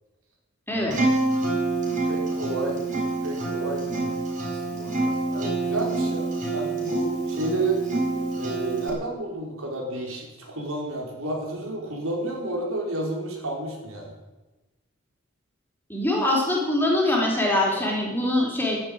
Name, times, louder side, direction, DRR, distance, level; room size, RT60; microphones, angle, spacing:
voice 1, 0.7-1.1 2.0-2.8 3.2-7.8 8.4-14.1, right 2 dB, 85° right, -1 dB, 5.0 m, -31 dB
Acoustic guitar, 0.9-8.9, right 3 dB, 35° right, 6.0 m, -27 dB
voice 2, 15.9-18.8, left 1 dB, 10° left, -2 dB, 4.1 m, -23 dB
12.0 x 11.5 x 9.0 m, 1.1 s
head